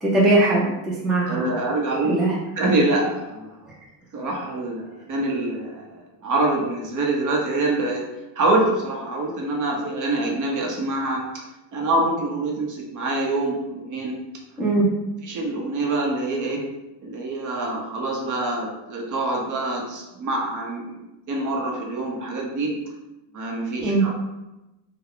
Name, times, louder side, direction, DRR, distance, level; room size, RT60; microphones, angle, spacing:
voice 1, 0.0-1.5 2.0-2.3 14.6-14.9 23.8-24.0, right 2 dB, ahead, -5 dB, 0.5 m, -20 dB
voice 2, 1.3-2.2 2.6-3.6 4.1-8.0 8.4-11.4 11.7-14.1 15.2-16.6 17.0-21.0 21.3-22.7 23.3-24.1, right 2 dB, 45° right, -1 dB, 0.9 m, -25 dB
3.4 x 2.3 x 3.6 m, 0.98 s
cardioid pair, 130°, 44 cm